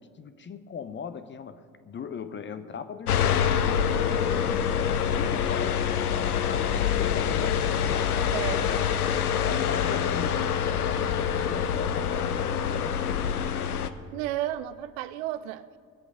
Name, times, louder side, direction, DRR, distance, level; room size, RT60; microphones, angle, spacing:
voice 1, 0.0-4.9 5.1-8.1 8.5-13.3, left 6 dB, 25° left, 11 dB, 0.7 m, -39 dB
sound 1, 3.1-13.9, left 8 dB, 85° left, 0.6 m, -26 dB
voice 2, 8.3-8.6 9.4-9.7 14.1-15.6, right 13 dB, 60° right, 14 dB, 0.6 m, -33 dB
20.0 x 8.4 x 4.9 m, 2.2 s
figure-of-eight pair, 60°, 44 cm